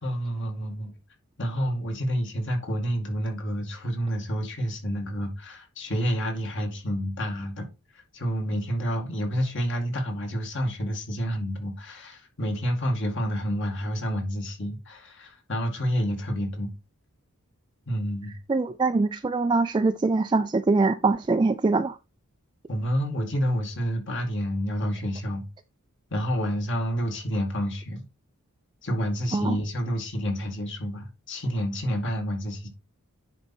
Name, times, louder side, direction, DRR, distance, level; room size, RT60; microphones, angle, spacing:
voice 1, 0.0-0.9 1.4-7.7 8.1-16.7 17.9-18.3 22.7-25.4 26.1-28.0 28.8-32.7, equal, 55° left, 2.3 m, -29 dB
voice 2, 18.5-22.0 29.3-29.6, right 3 dB, 20° right, 0.3 m, -23 dB
9.9 x 4.3 x 4.3 m
head